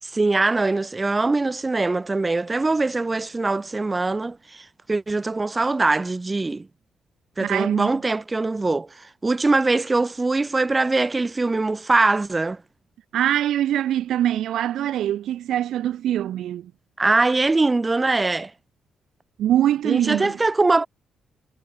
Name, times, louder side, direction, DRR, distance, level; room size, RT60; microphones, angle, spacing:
voice 1, 0.0-6.7 7.4-12.6 17.0-18.5 19.8-20.9, right 3 dB, 15° right, 4.5 m, -22 dB
voice 2, 7.4-7.9 13.1-16.7 19.4-20.4, right 11 dB, 70° right, 2.1 m, -23 dB
cardioid pair, 150°, 0 cm